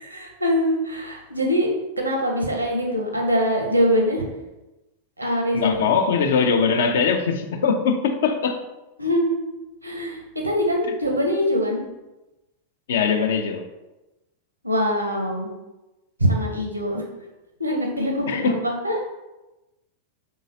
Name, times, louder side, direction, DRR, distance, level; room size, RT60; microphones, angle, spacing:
voice 1, 0.0-1.7 2.0-4.3 5.2-5.8 9.0-9.5 9.8-10.2 10.4-11.8 14.6-15.5 16.2-17.0 17.6-19.0, equal, 85° right, 0.7 m, -23 dB
voice 2, 5.5-8.6 12.9-13.6 18.3-18.6, left 5 dB, 60° left, 0.4 m, -21 dB
3.8 x 3.3 x 2.7 m
figure-of-eight pair, 90°, 0 cm